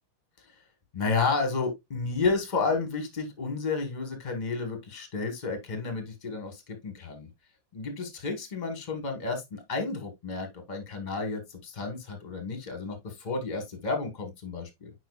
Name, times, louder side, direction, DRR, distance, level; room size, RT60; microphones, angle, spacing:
voice 1, 0.9-7.3 7.7-14.9, left 4 dB, 25° left, 1.4 m, -31 dB
9.1 x 4.9 x 2.3 m
omnidirectional pair, 2.1 m